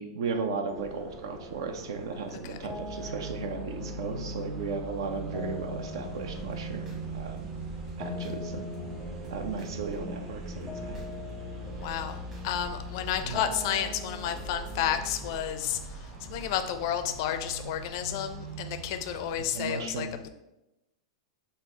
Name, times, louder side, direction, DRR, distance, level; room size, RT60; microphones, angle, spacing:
voice 1, 0.0-7.5 8.0-8.7 9.3-11.0 13.2-13.4 19.4-20.1, right 5 dB, 65° right, 7 dB, 0.5 m, -35 dB
sound 1, 0.7-15.4, left 2 dB, ahead, 0.7 m, -42 dB
sound 2, 0.7-19.5, right 3 dB, 35° right, 0.8 m, -42 dB
sound 3, 6.2-8.3 8.7-11.3 11.6-13.8 14.2-16.8, right 4 dB, 20° right, 1.3 m, -47 dB
voice 2, 11.8-12.2 12.4-15.8 16.3-20.3, left 10 dB, 55° left, 8 dB, 0.4 m, -31 dB
4.0 x 2.0 x 3.8 m, 0.92 s
hypercardioid pair, 105°, 3 cm